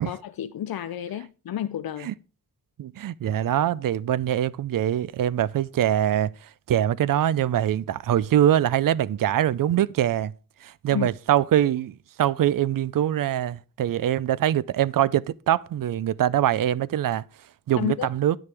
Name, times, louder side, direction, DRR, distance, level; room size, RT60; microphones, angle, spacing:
voice 1, 0.0-2.1 10.9-11.1 17.8-18.1, left 10 dB, 75° left, 0.5 m, -31 dB
voice 2, 2.8-10.3 10.6-17.2 17.7-18.4, right 11 dB, 65° right, 0.5 m, -23 dB
10.5 x 9.7 x 3.4 m
wide cardioid pair, 110°, 36 cm